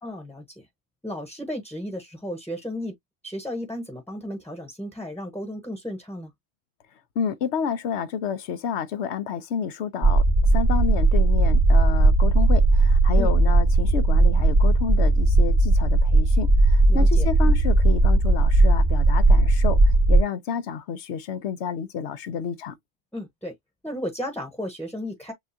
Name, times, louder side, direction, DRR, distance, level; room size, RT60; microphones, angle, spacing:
voice 1, 0.0-0.7 1.0-2.9 3.2-6.3 13.2-13.3 16.9-17.3 23.1-23.5 23.8-25.3, equal, ahead, 0.9 m, -34 dB
voice 2, 7.2-10.2 10.5-22.8, left 7 dB, 80° left, 1.0 m, -30 dB
sound 1, 10.0-20.2, right 2 dB, 65° right, 2.2 m, -18 dB
7.0 x 2.3 x 2.7 m
omnidirectional pair, 1.2 m